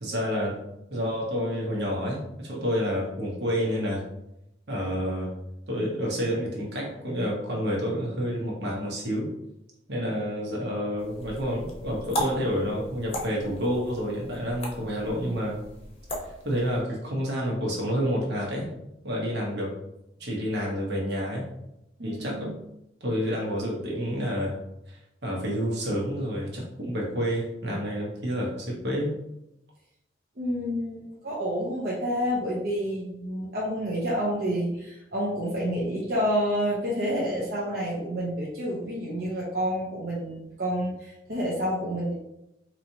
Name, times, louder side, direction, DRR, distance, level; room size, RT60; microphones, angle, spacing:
voice 1, 0.0-0.6 0.9-4.0 4.7-5.3 5.7-9.3 9.9-15.6 16.4-18.7 19.0-19.8 20.2-21.5 22.0-22.5 23.0-24.6 24.9-29.1, equal, 75° right, -2 dB, 1.2 m, -29 dB
sound 1, 11.0-16.8, equal, 35° left, 0.7 m, -37 dB
voice 2, 22.0-22.6 30.4-42.1, equal, 60° right, -6 dB, 0.8 m, -29 dB
4.1 x 3.1 x 2.9 m, 0.87 s
head